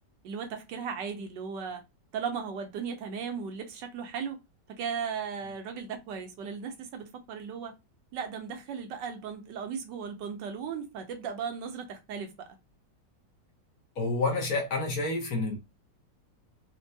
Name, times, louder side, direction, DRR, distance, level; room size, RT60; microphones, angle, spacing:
voice 1, 0.2-1.8 2.1-4.4 4.7-7.7 8.1-12.5, right 6 dB, 75° right, 1.3 m, -36 dB
voice 2, 14.0-15.6, left 3 dB, 60° left, 1.3 m, -29 dB
4.4 x 2.2 x 2.6 m
omnidirectional pair, 1.9 m